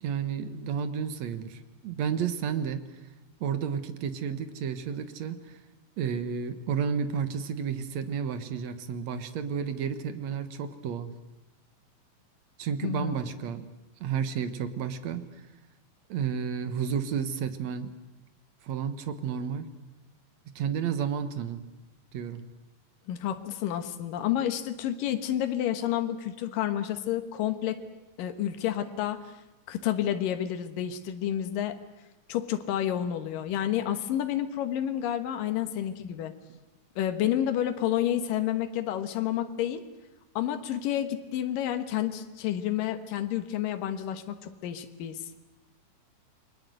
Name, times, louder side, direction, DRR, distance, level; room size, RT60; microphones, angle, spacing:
voice 1, 0.0-2.8 3.4-5.6 6.0-11.1 12.6-13.7 14.0-15.2 16.1-17.9 18.6-19.7 20.5-21.6 22.1-22.4 36.5-36.6, right 7 dB, 60° right, 10 dB, 2.3 m, -31 dB
voice 2, 12.8-13.2 23.1-27.8 28.2-29.3 29.7-31.8 32.3-36.3 37.0-39.8 40.4-45.2, left 11 dB, 75° left, 8 dB, 3.0 m, -30 dB
29.0 x 22.0 x 7.9 m, 1.0 s
omnidirectional pair, 4.0 m